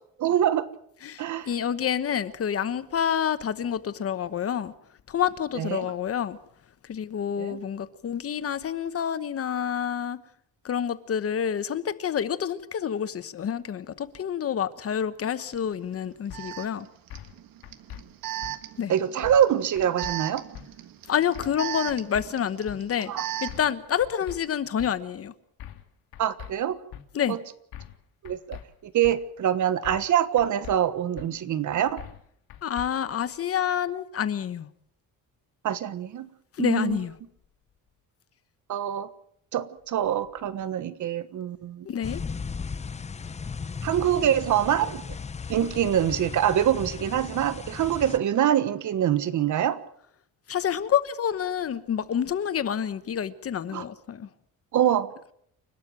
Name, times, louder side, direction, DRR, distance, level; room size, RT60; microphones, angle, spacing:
voice 1, 0.2-0.7 1.2-1.5 5.5-5.9 7.4-7.6 18.9-20.4 23.1-23.3 26.2-26.8 27.3-27.4 28.2-32.0 35.6-36.3 36.6-37.0 38.7-39.1 39.5-41.9 43.8-45.0 45.5-49.8 53.7-53.8 54.7-55.1, right 10 dB, 55° right, 1.3 m, -25 dB
voice 2, 1.0-4.7 5.1-6.4 6.9-10.2 10.6-16.9 18.8-18.9 21.1-23.1 23.4-25.3 27.1-27.4 32.6-34.7 36.6-37.1 41.8-42.2 50.5-54.3, left 8 dB, 40° left, 1.1 m, -28 dB
Alarm, 15.5-15.6 16.3-23.7, right 13 dB, 70° right, 1.5 m, -37 dB
sound 1, 16.3-16.4 17.1-17.4 17.6-18.0 18.4-18.5 19.2-19.5 19.8-20.1 20.5-20.7 21.3-21.6 21.9-22.3 22.7-22.8 23.5-23.7 24.0-24.4 24.8-24.9 25.6-25.9 26.1-26.5 26.9-27.0 27.7-28.0 28.3-28.6 29.0-29.2 29.8-30.1 30.4-30.8 31.2-31.3 32.0-32.2 32.5-32.9, left 11 dB, 80° left, 2.4 m, -41 dB
sound 2, 42.0-48.2, left 5 dB, 20° left, 0.7 m, -36 dB
29.0 x 12.5 x 7.6 m
cardioid pair, 155°, 36 cm